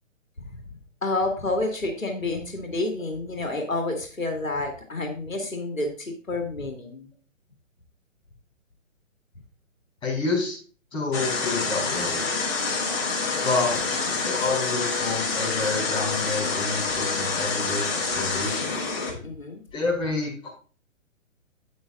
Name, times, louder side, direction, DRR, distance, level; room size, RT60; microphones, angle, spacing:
voice 1, 1.0-7.1 19.2-19.6, left 2 dB, 85° left, 3 dB, 2.1 m, -29 dB
voice 2, 10.0-10.6 10.9-12.3 13.4-18.8 19.7-20.5, left 3 dB, 15° left, -4 dB, 4.6 m, -29 dB
sound 1, 11.1-19.1, left 4 dB, 40° left, 4.4 m, -27 dB
11.0 x 8.3 x 2.5 m, 0.38 s
figure-of-eight pair, 130°, 39 cm